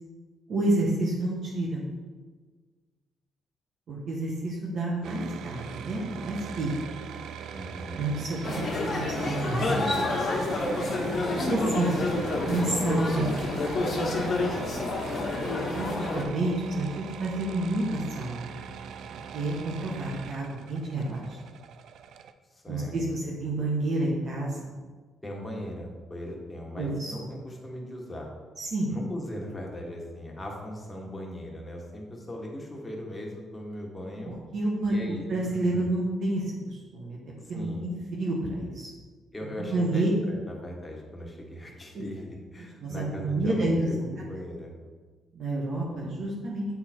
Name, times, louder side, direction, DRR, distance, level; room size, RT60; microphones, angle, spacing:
voice 1, 0.5-1.8 3.9-6.7 8.0-10.2 11.4-12.0 12.4-13.3 15.7-18.5 19.1-21.4 22.7-24.6 26.7-27.2 28.6-28.9 34.2-37.2 37.5-38.9 39.6-40.1 41.9-42.0 42.8-43.8 45.3-46.7, right 2 dB, 60° right, -3 dB, 1.3 m, -29 dB
sound 1, 5.0-22.3, right 7 dB, 75° right, 0.4 m, -41 dB
voice 2, 7.5-8.1 22.5-23.3 25.2-28.3 28.9-34.3 34.9-35.9 37.5-37.9 39.3-44.7, equal, 15° left, -1 dB, 1.6 m, -39 dB
sound 2, 8.4-16.2, left 2 dB, 45° left, 1.3 m, -29 dB
8.1 x 3.8 x 4.5 m, 1.4 s
cardioid pair, 90°, 0 cm